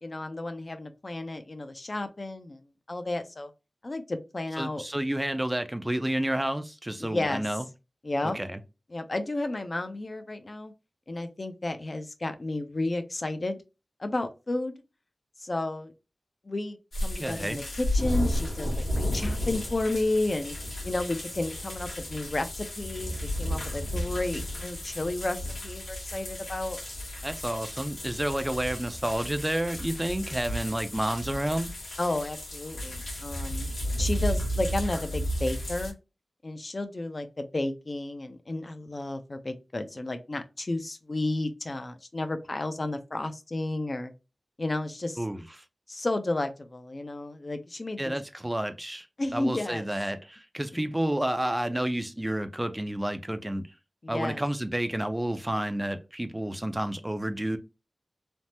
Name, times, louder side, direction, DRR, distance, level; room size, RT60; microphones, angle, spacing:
voice 1, 0.0-2.6 2.9-3.5 3.8-4.8 7.0-7.4 8.0-8.4 8.9-10.7 11.1-13.6 14.0-14.7 15.4-15.9 16.4-20.5 20.8-26.8 32.0-36.0 36.4-44.1 44.6-45.2 45.9-48.1 49.2-49.9 54.0-54.4, left 2 dB, 45° left, 0.5 m, -32 dB
voice 2, 4.6-7.7 8.2-8.6 17.1-17.6 27.2-31.7 45.2-45.6 48.0-49.1 49.3-53.7 54.1-57.6, right 1 dB, 15° right, 0.4 m, -30 dB
sound 1, 16.9-35.9, equal, 80° left, 1.5 m, -33 dB
3.4 x 2.0 x 2.8 m
wide cardioid pair, 65°, 0 cm